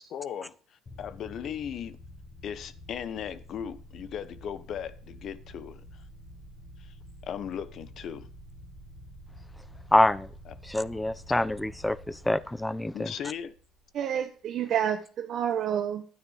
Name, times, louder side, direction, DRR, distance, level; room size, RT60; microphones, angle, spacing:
voice 1, 0.1-0.5 1.0-2.0 2.4-5.8 6.8-6.9 7.2-8.3 10.5-10.6 12.9-13.5, left 8 dB, 60° left, 1.2 m, -37 dB
sound 1, 0.9-14.2, equal, 45° left, 4.8 m, -49 dB
voice 2, 9.9-10.3 10.7-13.1, left 1 dB, 10° left, 0.9 m, -26 dB
voice 3, 13.9-16.1, right 9 dB, 60° right, 1.1 m, -29 dB
12.5 x 9.6 x 5.0 m
hypercardioid pair, 65°, 0 cm